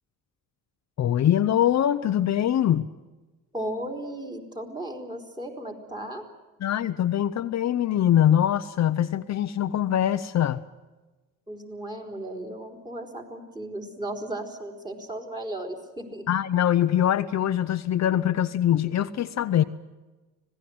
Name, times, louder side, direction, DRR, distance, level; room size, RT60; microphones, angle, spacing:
voice 1, 1.0-2.9 6.6-10.6 16.3-19.6, left 10 dB, 50° left, 0.8 m, -23 dB
voice 2, 3.5-6.2 11.5-16.3, right 1 dB, 10° right, 3.9 m, -35 dB
26.0 x 18.0 x 7.9 m
cardioid pair, 130°, 35 cm